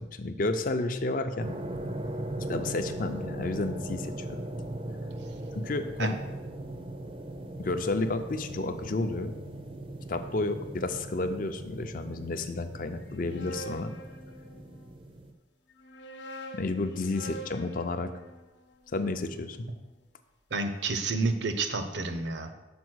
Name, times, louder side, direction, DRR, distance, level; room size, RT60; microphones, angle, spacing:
voice 1, 0.0-1.6 2.4-4.4 5.5-6.2 7.6-9.3 10.1-13.9 16.5-18.1 18.9-19.7, left 2 dB, 50° left, 8 dB, 0.5 m, -31 dB
sound 1, 1.4-15.3, right 1 dB, 30° right, 0.5 m, -39 dB
sound 2, 13.0-14.9 15.7-19.8, right 1 dB, 80° left, 0.9 m, -46 dB
voice 2, 20.5-22.5, right 3 dB, 75° right, 7 dB, 0.7 m, -29 dB
6.1 x 4.6 x 6.2 m, 1.1 s
head